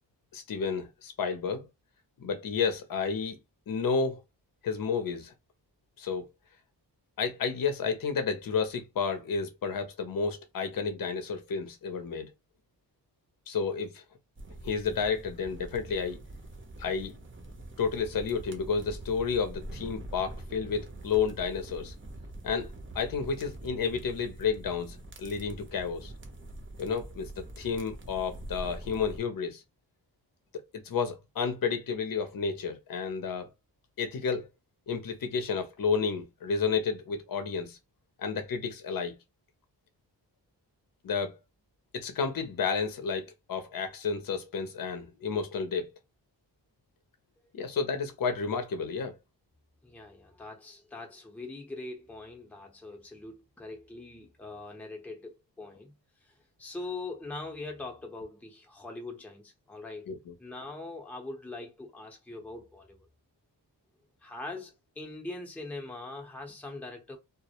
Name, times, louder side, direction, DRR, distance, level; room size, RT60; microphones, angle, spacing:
voice 1, 0.3-1.7 2.2-3.4 3.7-4.2 4.6-5.3 6.0-6.3 7.2-12.3 13.5-14.0 14.6-16.2 16.8-17.2 17.8-21.9 22.4-26.1 26.8-29.6 30.8-33.5 34.0-34.5 34.9-37.8 38.2-39.2 41.0-41.4 41.9-45.9 47.5-49.2 60.1-60.3, left 5 dB, 50° left, 0.7 m, -31 dB
sound 1, 14.4-29.2, right 1 dB, 30° right, 0.7 m, -44 dB
voice 2, 49.8-55.9 56.6-60.1 60.4-63.0 64.2-67.2, left 2 dB, 5° left, 0.7 m, -42 dB
2.1 x 2.0 x 2.9 m
cardioid pair, 55°, 43 cm